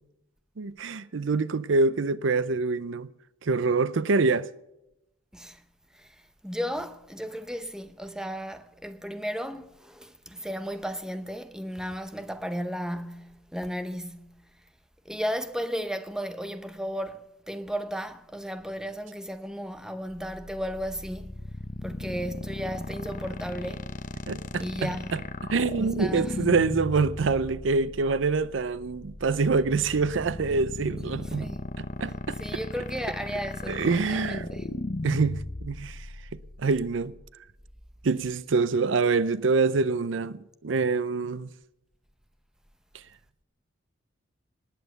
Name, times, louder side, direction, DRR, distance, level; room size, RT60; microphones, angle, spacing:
voice 1, 0.6-3.1 3.4-4.5 24.3-31.5 31.8-32.4 33.7-34.5 35.0-36.1 36.6-37.1 38.0-41.5, right 4 dB, 70° right, 0.5 m, -26 dB
voice 2, 6.4-14.3 15.1-21.3 21.8-23.9 24.6-25.1 25.7-26.4 31.2-31.7 32.4-34.7, equal, 5° right, 0.7 m, -34 dB
sound 1, 20.1-37.3, left 2 dB, 40° left, 0.9 m, -36 dB
19.0 x 9.3 x 6.7 m
head